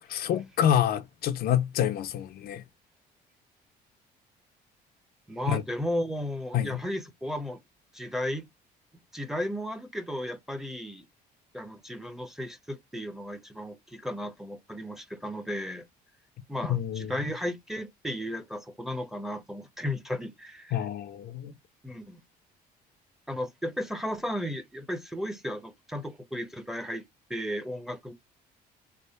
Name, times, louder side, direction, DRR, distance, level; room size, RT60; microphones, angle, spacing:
voice 1, 0.1-2.6 5.5-5.6 6.5-6.8 16.7-17.1 20.7-21.5, left 10 dB, 65° left, 0.6 m, -27 dB
voice 2, 5.3-7.6 7.9-8.5 9.1-11.1 11.5-15.8 16.5-20.9 21.8-22.2 23.3-27.0 27.3-28.1, left 1 dB, ahead, 0.8 m, -34 dB
3.4 x 2.1 x 4.1 m
cardioid pair, 110°, 17 cm